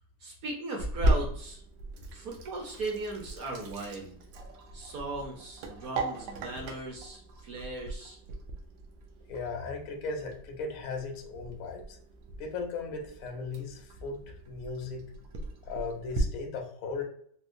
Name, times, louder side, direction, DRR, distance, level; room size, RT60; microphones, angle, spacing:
voice 1, 0.2-1.6 2.1-4.2 4.7-8.2, right 2 dB, 60° right, 0 dB, 1.0 m, -38 dB
Sink (filling or washing), 0.8-16.2, right 1 dB, 80° right, 1.3 m, -37 dB
voice 2, 9.3-12.0 12.4-15.0 15.6-17.0, left 4 dB, 70° left, 2 dB, 0.8 m, -37 dB
4.4 x 2.0 x 2.5 m, 0.62 s
omnidirectional pair, 2.1 m